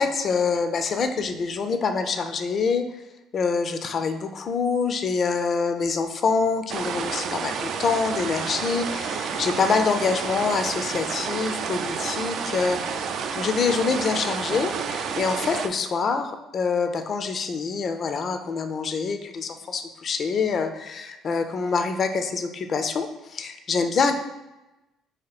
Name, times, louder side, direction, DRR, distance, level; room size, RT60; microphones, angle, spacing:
voice 1, 0.0-2.9 3.3-12.9 13.4-24.1, left 5 dB, 50° left, 7 dB, 0.4 m, -25 dB
sound 1, 6.7-15.7, right 6 dB, 65° right, 0.3 m, -30 dB
2.9 x 2.8 x 4.0 m, 1.0 s
supercardioid pair, 85°, 0 cm